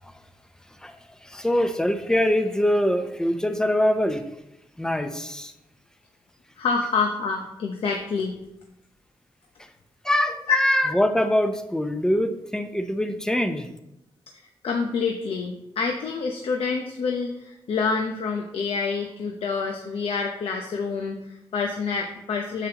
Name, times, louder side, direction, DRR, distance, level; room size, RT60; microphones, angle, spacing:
voice 1, 1.2-4.2 4.8-5.5 10.0-13.7, equal, 5° left, 8 dB, 0.7 m, -23 dB
voice 2, 6.6-8.4 10.5-10.6 14.6-22.7, left 5 dB, 75° left, 2 dB, 0.8 m, -27 dB
9.2 x 7.0 x 3.0 m, 0.85 s
cardioid pair, 105°, 10 cm